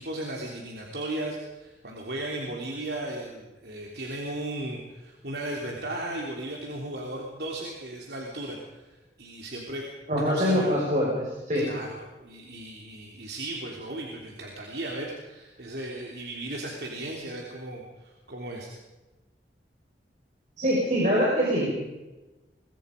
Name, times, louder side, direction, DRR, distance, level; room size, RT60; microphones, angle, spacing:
voice 1, 0.0-9.9 10.2-10.8 11.5-18.7, right 1 dB, 65° right, -1 dB, 3.3 m, -36 dB
voice 2, 10.1-11.7 20.6-21.7, equal, 40° right, -4 dB, 5.6 m, -24 dB
25.0 x 22.5 x 5.2 m, 1.1 s
head